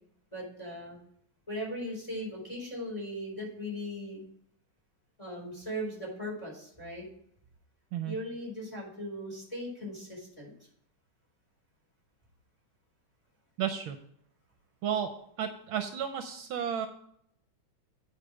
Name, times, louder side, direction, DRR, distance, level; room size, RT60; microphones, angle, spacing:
voice 1, 0.3-1.0 1.5-4.2 5.2-7.1 8.0-10.5, equal, 15° left, -1 dB, 4.2 m, -38 dB
voice 2, 13.6-14.0 14.8-16.9, right 8 dB, 75° right, 7 dB, 1.5 m, -33 dB
8.9 x 4.9 x 6.3 m, 0.68 s
omnidirectional pair, 2.4 m